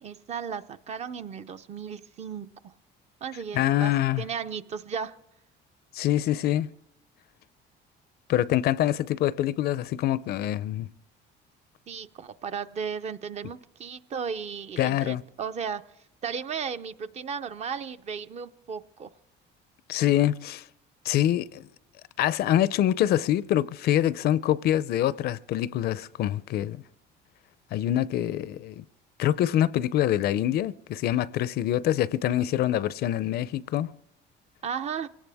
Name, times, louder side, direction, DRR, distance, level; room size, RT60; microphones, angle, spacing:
voice 1, 0.0-2.7 3.2-5.2 11.9-15.9 16.2-19.1 34.6-35.1, right 6 dB, 35° right, 0.6 m, -35 dB
voice 2, 3.5-4.2 5.9-6.7 8.3-10.9 14.8-15.2 19.9-20.6 21.1-21.6 22.2-26.8 27.7-28.8 29.2-33.9, left 12 dB, 55° left, 0.5 m, -25 dB
23.5 x 17.5 x 3.5 m
cardioid pair, 145°, 19 cm